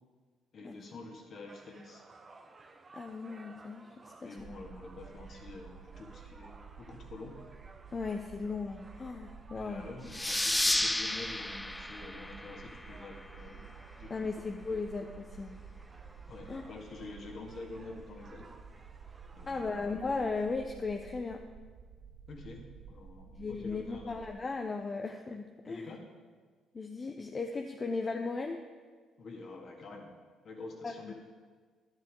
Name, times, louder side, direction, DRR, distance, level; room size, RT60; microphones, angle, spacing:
voice 1, 0.5-2.0 4.1-7.5 9.5-14.4 16.3-18.5 19.3-20.0 22.3-24.2 25.7-26.0 29.2-30.1 30.4-31.1, left 3 dB, 55° left, 1 dB, 2.0 m, -47 dB
sound 1, 1.5-20.6, right 3 dB, 35° right, 0.9 m, -57 dB
voice 2, 2.9-3.9 4.2-4.5 7.9-9.9 14.1-15.6 16.5-16.7 19.5-21.4 23.3-25.9 26.7-28.6 30.8-31.1, left 4 dB, 35° left, 4 dB, 0.7 m, -36 dB
sound 2, 4.4-24.3, right 6 dB, 60° right, 0.7 m, -52 dB
sound 3, 10.1-13.4, left 1 dB, 10° left, 0.4 m, -32 dB
10.5 x 10.5 x 3.7 m, 1.5 s
hypercardioid pair, 50°, 0 cm